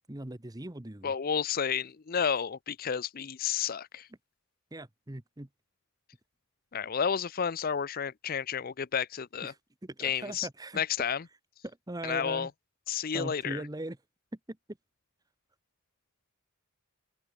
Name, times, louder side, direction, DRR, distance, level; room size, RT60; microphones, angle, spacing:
voice 1, 0.1-1.1 4.7-5.5 9.4-10.8 11.6-12.5 13.1-14.0 14.5-14.6, right 1 dB, 15° right, 0.9 m, -40 dB
voice 2, 1.0-4.1 6.7-9.5 10.0-10.5 10.7-11.2 12.0-12.5 12.9-13.6, left 7 dB, 40° left, 0.5 m, -31 dB
open air
head